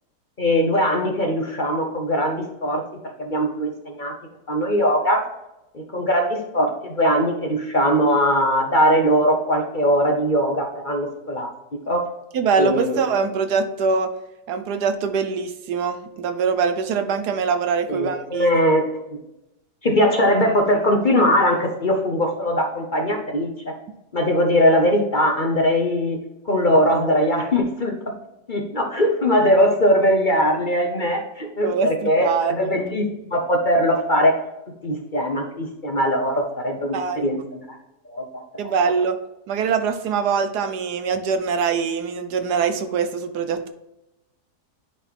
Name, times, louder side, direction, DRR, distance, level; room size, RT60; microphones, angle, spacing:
voice 1, 0.4-2.8 3.2-4.1 4.5-5.2 5.7-11.5 11.9-12.0 12.6-13.0 17.9-18.8 19.8-23.7 24.1-26.2 26.4-27.9 28.5-34.4 34.8-37.6 38.1-38.7, equal, 35° left, 2 dB, 0.9 m, -20 dB
voice 2, 12.3-14.1 14.5-18.6 31.6-32.7 36.9-37.3 38.6-39.2 39.5-43.7, right 5 dB, 80° right, 8 dB, 1.3 m, -23 dB
9.9 x 4.3 x 3.6 m, 0.89 s
omnidirectional pair, 1.7 m